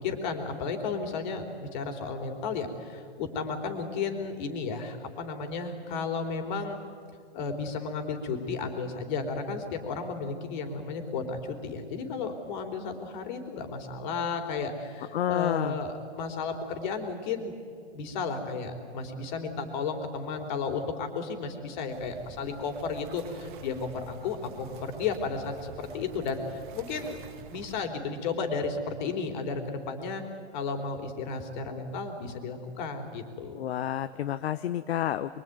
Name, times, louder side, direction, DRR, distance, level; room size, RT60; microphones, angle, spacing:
voice 1, 0.0-6.8 7.3-17.5 17.9-27.2 27.5-30.2 30.5-33.6, left 4 dB, 45° left, 5 dB, 3.7 m, -33 dB
voice 2, 15.1-15.8 33.6-35.4, left 11 dB, 65° left, 11 dB, 0.9 m, -29 dB
sound 1, 21.9-27.8, right 7 dB, 45° right, 2.1 m, -47 dB
24.5 x 23.0 x 9.4 m, 2.3 s
hypercardioid pair, 150°, 34 cm